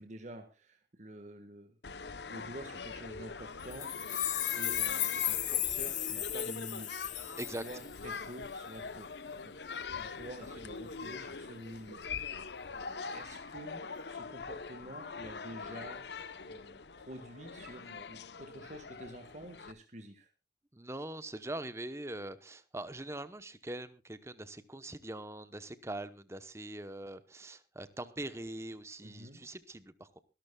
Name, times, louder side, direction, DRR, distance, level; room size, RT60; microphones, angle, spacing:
voice 1, 0.0-6.9 7.2-9.1 9.4-9.6 10.0-16.0 16.4-20.3 29.0-29.4, right 1 dB, 40° right, 6 dB, 1.6 m, -49 dB
sound 1, 1.8-19.7, left 5 dB, 75° left, 0.9 m, -43 dB
sound 2, 3.7-8.2, left 12 dB, 45° left, 1.1 m, -35 dB
voice 2, 20.7-30.2, right 1 dB, 15° right, 12 dB, 0.9 m, -42 dB
24.0 x 12.0 x 2.3 m, 0.29 s
head